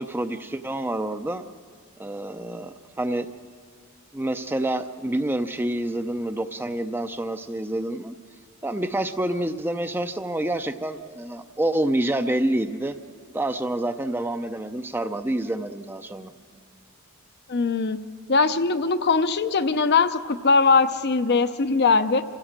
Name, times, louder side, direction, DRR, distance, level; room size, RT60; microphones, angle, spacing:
voice 1, 0.0-1.5 2.0-3.3 4.1-8.2 8.6-12.9 13.3-16.3, right 1 dB, 10° right, 9 dB, 0.5 m, -27 dB
voice 2, 17.5-18.0 18.3-22.2, left 4 dB, 50° left, 10 dB, 0.7 m, -21 dB
27.0 x 16.0 x 7.4 m, 2.3 s
head